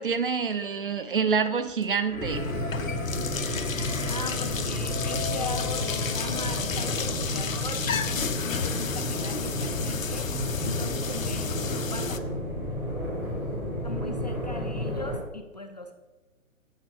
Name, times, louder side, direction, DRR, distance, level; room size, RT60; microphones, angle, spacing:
voice 1, 0.0-2.5, right 5 dB, 40° right, 9 dB, 0.6 m, -27 dB
sound 1, 1.7-1.9 2.3-12.2, left 7 dB, 70° left, 0.7 m, -33 dB
sound 2, 2.1-8.9, left 2 dB, 90° left, 1.5 m, -36 dB
sound 3, 2.2-15.2, left 1 dB, 5° right, 0.9 m, -32 dB
voice 2, 4.1-12.2 13.8-15.9, left 3 dB, 30° left, 5 dB, 0.4 m, -39 dB
8.0 x 6.0 x 4.6 m, 1.1 s
figure-of-eight pair, 130°, 42 cm